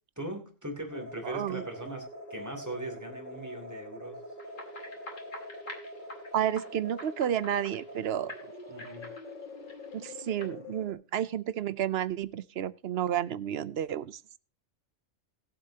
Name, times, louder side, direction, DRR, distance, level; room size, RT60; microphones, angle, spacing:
voice 1, 0.2-4.2 8.7-9.1, right 1 dB, 15° right, 3 dB, 2.8 m, -40 dB
sound 1, 0.9-10.9, left 1 dB, 40° left, 1.9 m, -44 dB
voice 2, 1.2-1.7 6.3-8.3 9.9-14.2, right 10 dB, 60° right, 17 dB, 0.8 m, -31 dB
sound 2, 4.4-8.0 8.3-10.5, left 2 dB, 75° left, 2.6 m, -47 dB
20.5 x 7.5 x 2.8 m, 0.36 s
omnidirectional pair, 1.3 m